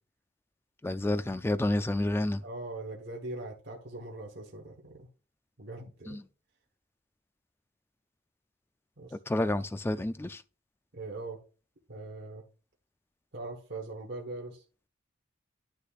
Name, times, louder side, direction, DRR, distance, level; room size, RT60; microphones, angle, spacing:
voice 1, 0.8-2.4 6.1-6.3 9.1-10.4, left 1 dB, 10° left, 0.3 m, -30 dB
voice 2, 2.4-5.1 5.6-6.2 9.0-9.1 10.9-11.4 11.9-12.4 13.3-14.6, right 2 dB, 55° right, 1.2 m, -41 dB
9.7 x 6.6 x 2.4 m
head